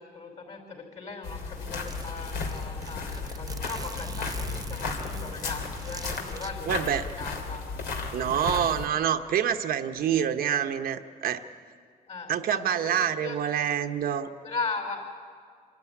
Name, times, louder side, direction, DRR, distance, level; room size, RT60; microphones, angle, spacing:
voice 1, 0.0-7.6 8.4-8.6 12.1-12.9 13.2-13.4 14.4-15.0, left 4 dB, 45° left, 2 dB, 5.4 m, -38 dB
Zipper (clothing), 1.1-1.2 1.4-1.5 1.9-6.5, right 5 dB, 25° right, 0.5 m, -43 dB
sound 1, 1.2-8.9, left 4 dB, 85° left, 3.0 m, -34 dB
voice 2, 6.7-7.0 8.1-11.4 12.3-14.3, right 9 dB, 70° right, 6 dB, 1.0 m, -27 dB
26.0 x 13.0 x 9.8 m, 2.1 s
cardioid pair, 125°, 16 cm